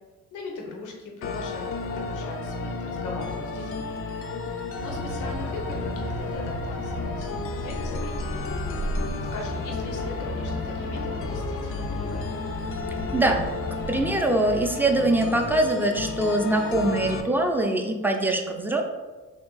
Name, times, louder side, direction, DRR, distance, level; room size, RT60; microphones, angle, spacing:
voice 1, 0.3-4.0 4.5-8.4 9.3-12.3, left 3 dB, 80° left, 0 dB, 0.9 m, -39 dB
sound 1, 1.2-17.2, left 4 dB, 45° left, 0.5 m, -33 dB
sound 2, 4.8-14.0, right 1 dB, 40° right, 0.7 m, -34 dB
voice 2, 13.1-13.5 13.9-18.8, right 2 dB, 5° right, 3 dB, 0.5 m, -23 dB
3.6 x 2.9 x 3.9 m, 1.3 s
cardioid pair, 90°, 30 cm